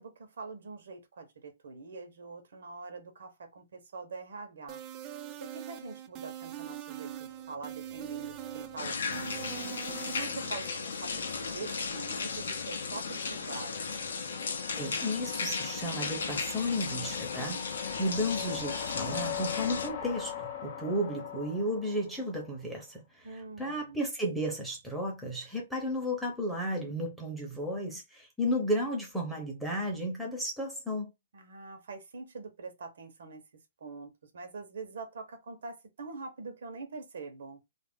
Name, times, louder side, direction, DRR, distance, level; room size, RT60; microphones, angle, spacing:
voice 1, 0.0-4.8 5.4-9.5 10.0-14.1 23.2-24.0 31.3-33.4 33.8-37.6, right 4 dB, 75° right, 0.9 m, -44 dB
sound 1, 4.7-10.5, right 12 dB, 25° right, 0.3 m, -42 dB
sound 2, 7.3-22.6, left 9 dB, 40° left, 0.5 m, -43 dB
sound 3, 8.8-19.9, left 4 dB, 90° left, 0.5 m, -36 dB
voice 2, 14.8-31.1, equal, ahead, 0.7 m, -33 dB
2.5 x 2.0 x 3.5 m
hypercardioid pair, 160°, 0 cm